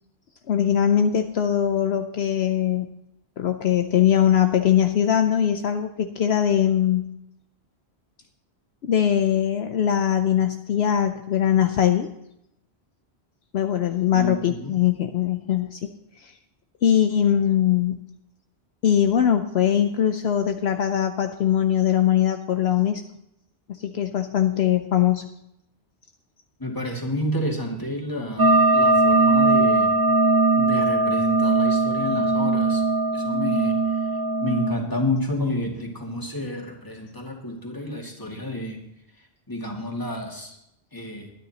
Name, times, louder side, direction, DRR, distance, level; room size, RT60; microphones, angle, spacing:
voice 1, 0.5-2.9 3.4-7.1 8.8-12.1 13.5-15.9 16.2-16.3 16.8-18.0 18.8-23.0 23.7-25.3, left 10 dB, 70° left, 7 dB, 0.9 m, -21 dB
voice 2, 14.1-14.8 26.6-30.0 30.6-32.8 33.1-38.8 39.2-40.6 40.9-41.3, left 1 dB, 20° left, -1 dB, 2.3 m, -30 dB
sound 1, 28.4-34.7, right 2 dB, 25° right, 0.6 m, -20 dB
22.0 x 10.0 x 2.9 m, 0.81 s
omnidirectional pair, 1.1 m